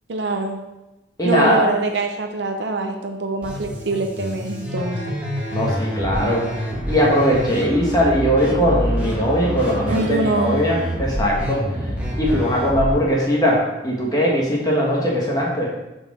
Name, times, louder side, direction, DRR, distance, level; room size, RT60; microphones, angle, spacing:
voice 1, 0.1-0.6 1.2-5.1 9.9-10.6, right 2 dB, 75° right, 4 dB, 0.7 m, -24 dB
voice 2, 1.2-1.7 5.5-6.4 6.9-11.6 12.2-15.7, equal, 20° left, -3 dB, 1.3 m, -20 dB
sound 1, 3.4-12.9, equal, 5° right, 1.6 m, -27 dB
6.4 x 4.5 x 6.0 m, 1.0 s
head